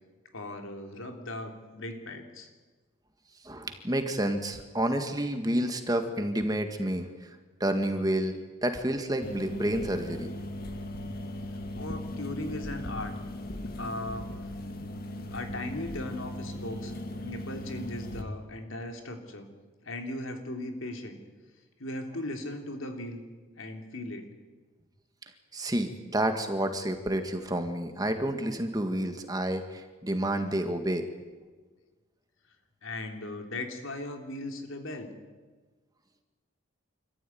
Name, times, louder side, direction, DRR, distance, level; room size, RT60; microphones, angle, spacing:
voice 1, 0.3-2.5 11.8-13.1 13.7-14.3 15.3-19.5 19.8-21.2 21.8-23.2 23.6-24.3 32.8-35.1, left 1 dB, 80° left, 4 dB, 3.3 m, -38 dB
voice 2, 3.4-7.1 7.6-10.3 25.5-31.1, right 1 dB, 20° right, 6 dB, 1.8 m, -29 dB
sound 1, 9.2-18.2, left 1 dB, 45° left, 1.9 m, -38 dB
26.5 x 14.5 x 9.4 m, 1.4 s
head